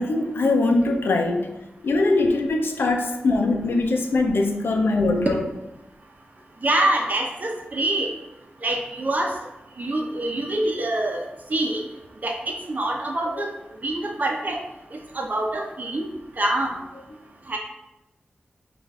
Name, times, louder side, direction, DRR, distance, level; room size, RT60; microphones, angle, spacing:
voice 1, 0.0-1.5 1.8-5.4, left 2 dB, 90° left, 4 dB, 0.5 m, -22 dB
voice 2, 6.6-8.1 8.6-9.3 9.8-11.8 12.2-13.5 13.8-14.6 14.9-16.1 16.4-16.8 17.5-17.6, right 1 dB, 50° right, 1 dB, 0.8 m, -25 dB
5.3 x 2.5 x 3.6 m, 0.94 s
wide cardioid pair, 90°, 4 cm